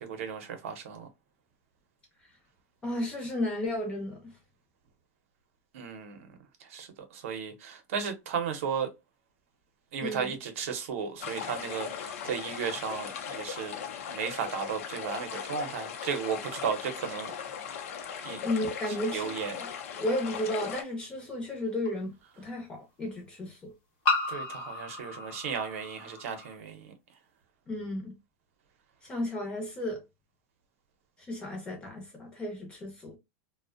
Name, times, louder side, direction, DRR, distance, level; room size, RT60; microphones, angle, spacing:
voice 1, 0.0-1.1 5.7-6.2 6.7-6.9 7.1-8.9 9.9-13.8 14.1-17.3 18.2-18.4 19.1-19.5 24.3-26.8, right 7 dB, 65° right, 0.6 m, -34 dB
voice 2, 2.8-4.3 10.0-10.3 18.4-19.7 20.0-23.7 27.7-28.1 29.0-30.0 31.3-33.2, left 1 dB, 15° left, 0.6 m, -33 dB
sound 1, 11.2-20.8, left 7 dB, 70° left, 0.5 m, -38 dB
sound 2, 20.1-20.2 21.8-21.9 24.0-26.5, left 3 dB, 45° left, 0.8 m, -33 dB
2.5 x 2.0 x 2.4 m
supercardioid pair, 175°, 8 cm